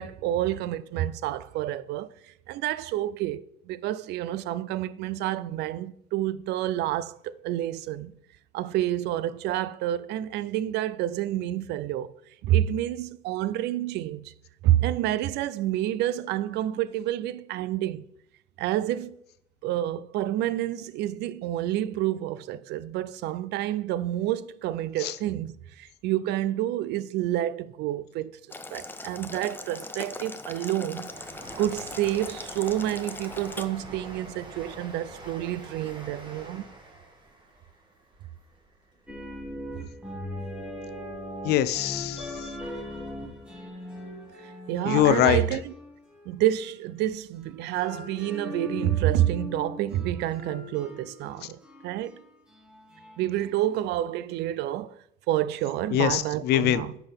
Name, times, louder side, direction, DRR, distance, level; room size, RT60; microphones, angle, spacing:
voice 1, 0.0-2.1 2.5-8.1 8.5-12.1 12.4-14.3 14.6-18.0 18.6-19.2 19.6-28.3 28.7-31.1 31.6-36.7 44.7-45.7 46.3-52.2 53.2-57.0, right 13 dB, 80° right, 0.4 m, -28 dB
Boiling, 28.5-33.6, left 2 dB, 10° left, 0.6 m, -40 dB
Train, 30.1-39.9 40.3-41.2 41.4-41.5, right 1 dB, 30° right, 2.1 m, -46 dB
sound 1, 39.1-46.9 47.4-53.8, left 1 dB, 5° right, 2.0 m, -40 dB
voice 2, 41.4-42.5 44.8-45.4 55.9-56.8, left 11 dB, 75° left, 0.6 m, -23 dB
9.7 x 6.0 x 3.5 m
cardioid pair, 110°, 17 cm